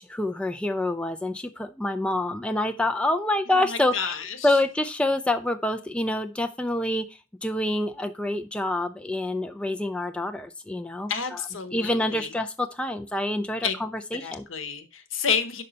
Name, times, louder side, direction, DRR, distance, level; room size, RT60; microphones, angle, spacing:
voice 1, 0.0-4.1 4.4-7.0 7.4-11.4 11.7-14.4, left 1 dB, 5° left, 7 dB, 0.3 m, -27 dB
voice 2, 3.5-4.5 11.1-12.3 13.6-13.8 14.1-15.6, left 6 dB, 75° left, 9 dB, 0.9 m, -30 dB
5.4 x 5.4 x 3.9 m, 0.30 s
head